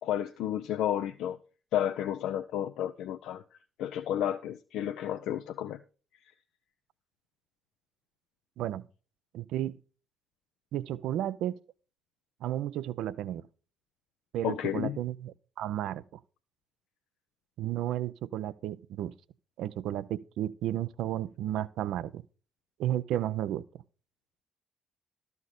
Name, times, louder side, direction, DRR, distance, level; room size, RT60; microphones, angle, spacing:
voice 1, 0.0-1.4 1.7-3.4 3.8-5.8 14.4-15.0, left 11 dB, 60° left, 0.4 m, -31 dB
voice 2, 9.3-9.8 10.7-11.6 12.4-13.5 14.3-16.2 17.6-19.1 19.6-22.2 22.8-23.6, right 12 dB, 60° right, 0.4 m, -33 dB
13.0 x 4.4 x 6.5 m
figure-of-eight pair, 45°, 0 cm